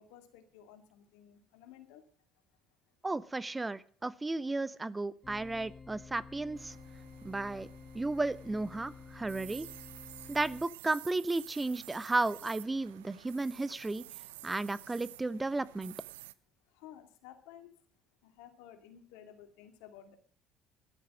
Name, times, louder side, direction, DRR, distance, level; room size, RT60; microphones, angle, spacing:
voice 1, 0.0-2.0 16.7-17.7 18.2-20.2, left 10 dB, 80° left, 7 dB, 2.3 m, -54 dB
voice 2, 3.0-6.8 7.2-7.7 7.9-9.7 10.3-14.0 14.4-15.9, right 2 dB, 20° right, 19 dB, 0.7 m, -34 dB
sound 1, 5.2-10.7, left 5 dB, 25° left, 1.2 m, -51 dB
sound 2, 6.6-16.3, right 15 dB, 90° right, 0.5 m, -51 dB
12.5 x 11.5 x 6.1 m, 0.43 s
hypercardioid pair, 65°, 0 cm